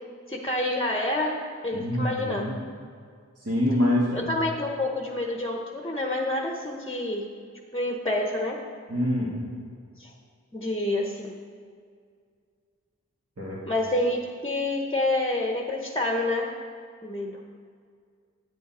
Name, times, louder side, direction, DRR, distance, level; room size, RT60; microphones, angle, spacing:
voice 1, 0.3-1.4 1.6-2.5 4.1-7.3 7.7-8.6 10.0-10.1 10.5-11.3 13.7-16.5 17.0-17.4, left 1 dB, 20° left, 0 dB, 0.9 m, -28 dB
voice 2, 1.7-2.6 3.4-4.3 8.9-9.4 13.4-13.6, left 1 dB, 55° right, -7 dB, 2.1 m, -26 dB
9.3 x 8.5 x 4.3 m, 2.1 s
wide cardioid pair, 50°, 30 cm